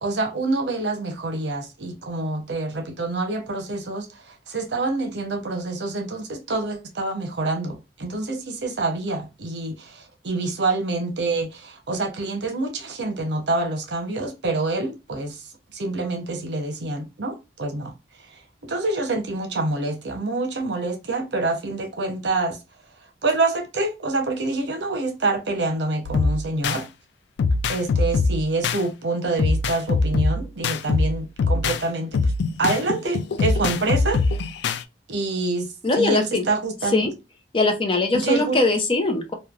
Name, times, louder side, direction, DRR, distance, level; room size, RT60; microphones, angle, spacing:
voice 1, 0.0-15.5 15.7-17.9 18.6-22.6 23.2-26.9 27.7-32.3 32.6-34.2 35.1-35.7 36.0-37.1 38.2-38.6, right 2 dB, 80° right, 0.8 m, -26 dB
sound 1, 26.0-26.8 27.4-28.8 29.4-31.8 32.1-34.8, left 4 dB, 75° left, 0.3 m, -22 dB
voice 2, 35.8-36.5 36.9-37.1 37.5-39.3, left 2 dB, 30° left, 0.6 m, -21 dB
3.1 x 2.3 x 2.3 m
head